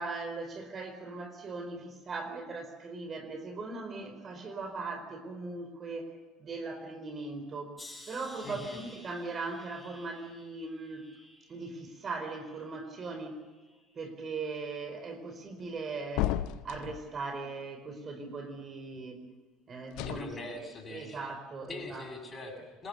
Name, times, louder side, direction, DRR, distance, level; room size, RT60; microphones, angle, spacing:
voice 1, 0.0-6.1 6.4-7.8 8.1-11.1 11.5-13.4 13.9-16.3 16.6-19.2 19.7-20.5 20.9-22.1, right 3 dB, 35° right, 6 dB, 4.4 m, -39 dB
sound 1, 7.8-12.9 13.4-14.1 14.8-15.1, left 1 dB, 10° left, 6.3 m, -54 dB
voice 2, 8.4-8.8 20.0-21.2 21.7-22.9, left 2 dB, 30° left, 4 dB, 6.9 m, -42 dB
sound 2, 16.2-17.0 19.9-20.2, left 14 dB, 60° left, 0.8 m, -32 dB
27.0 x 21.0 x 7.0 m, 1.3 s
figure-of-eight pair, 65°, 0 cm